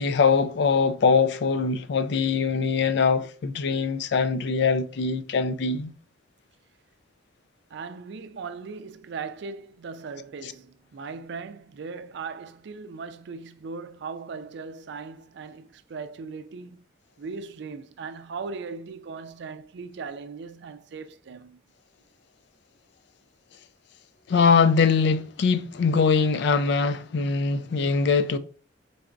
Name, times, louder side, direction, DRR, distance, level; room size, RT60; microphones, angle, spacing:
voice 1, 0.0-5.9 24.3-28.4, left 5 dB, 65° left, 0.4 m, -22 dB
voice 2, 7.7-16.9 17.2-21.6, right 4 dB, 65° right, 0.4 m, -38 dB
4.0 x 2.5 x 4.4 m
head